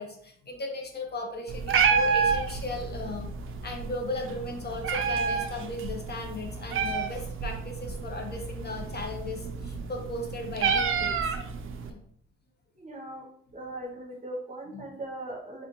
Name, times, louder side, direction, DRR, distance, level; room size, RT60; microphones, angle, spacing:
voice 1, 0.0-3.3 3.6-11.2 11.9-12.0 14.7-14.8, left 2 dB, 35° left, 2 dB, 0.6 m, -36 dB
Meow, 1.5-11.9, right 6 dB, 45° right, 0.4 m, -29 dB
voice 2, 12.8-13.3 13.5-15.6, right 1 dB, 25° right, 0 dB, 0.9 m, -39 dB
3.3 x 2.5 x 2.9 m, 0.66 s
cardioid pair, 90°, 30 cm